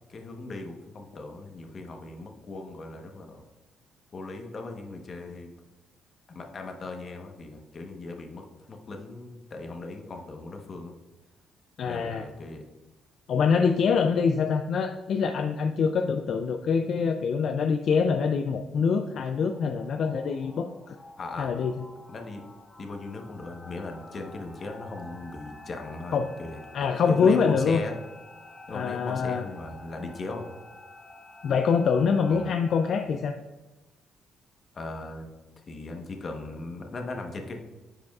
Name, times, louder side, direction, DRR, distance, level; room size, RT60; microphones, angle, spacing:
voice 1, 0.1-3.4 4.1-5.5 6.3-10.9 11.8-12.7 21.2-21.6 22.1-22.4 22.8-26.6 27.1-28.0 28.7-30.5 32.3-32.5 34.7-35.3 35.7-37.6, left 2 dB, 40° left, 3 dB, 1.0 m, -38 dB
voice 2, 11.8-12.2 13.3-21.0 21.4-21.7 26.1-26.3 26.7-27.8 28.7-29.4 31.4-33.4, left 5 dB, 60° left, 6 dB, 0.3 m, -25 dB
sound 1, 18.7-33.1, left 2 dB, 25° left, 1.3 m, -49 dB
10.5 x 5.0 x 2.4 m, 1.1 s
cardioid pair, 100°, 0 cm